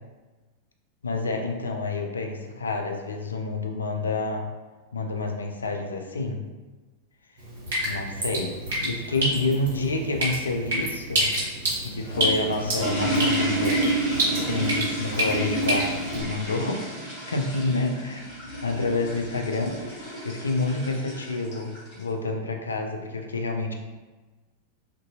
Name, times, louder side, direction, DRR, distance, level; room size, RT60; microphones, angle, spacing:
voice 1, 1.0-4.5 4.9-6.4 7.8-11.4 11.8-13.8 14.3-16.8 17.3-18.3 18.6-23.7, left 3 dB, 75° left, 3 dB, 0.3 m, -28 dB
Drip, 7.4-16.2, right 1 dB, 65° right, 1.2 m, -29 dB
sound 1, 11.8-22.0, right 1 dB, 50° left, 1.0 m, -30 dB
2.6 x 2.6 x 2.2 m, 1.3 s
figure-of-eight pair, 90°, 0 cm